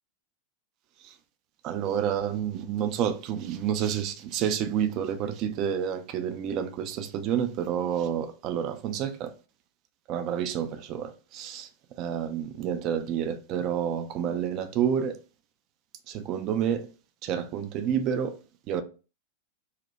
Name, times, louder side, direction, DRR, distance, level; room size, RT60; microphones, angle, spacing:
voice 1, 1.6-9.3 10.1-11.7 12.0-15.2 16.1-16.9 17.2-18.4 18.7-18.8, right 8 dB, 40° right, 0.3 m, -29 dB
2.5 x 2.1 x 2.9 m
figure-of-eight pair, 90°, 0 cm